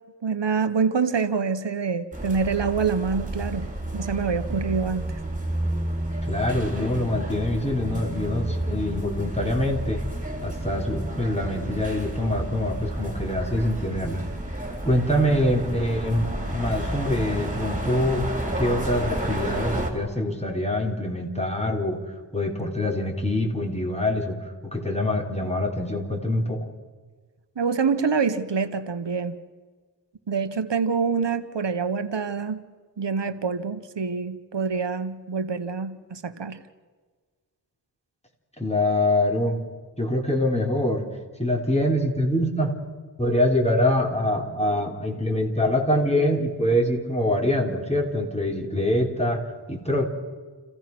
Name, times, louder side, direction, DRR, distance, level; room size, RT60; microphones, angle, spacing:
voice 1, 0.2-5.2 27.6-29.4 30.3-32.6 33.0-36.6, right 5 dB, 85° right, 10 dB, 1.1 m, -26 dB
sound 1, 2.1-19.9, right 1 dB, 20° right, 4.2 m, -31 dB
voice 2, 6.2-10.0 10.4-14.2 14.9-18.3 18.6-26.7 38.6-39.6 40.0-41.0 41.4-42.8 43.2-49.4 49.7-50.1, left 1 dB, 15° left, 1 dB, 3.7 m, -24 dB
29.0 x 16.0 x 6.1 m, 1.4 s
wide cardioid pair, 55°, 42 cm